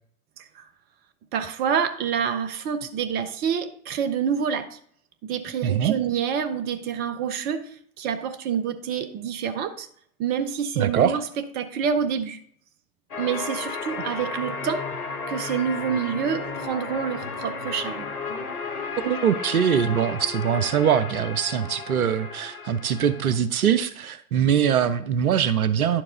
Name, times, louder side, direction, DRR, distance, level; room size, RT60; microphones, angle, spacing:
voice 1, 1.3-4.8 5.2-7.7 8.0-9.9 10.2-11.2 11.6-12.4 13.2-14.9 15.3-18.1, right 7 dB, 20° right, 0.6 m, -27 dB
voice 2, 5.6-5.9 10.8-11.2 14.0-14.1 19.0-26.0, right 8 dB, 75° right, 0.7 m, -22 dB
sound 1, 13.1-23.4, left 4 dB, 80° left, 1.0 m, -34 dB
10.5 x 4.7 x 3.8 m
figure-of-eight pair, 95°, 44 cm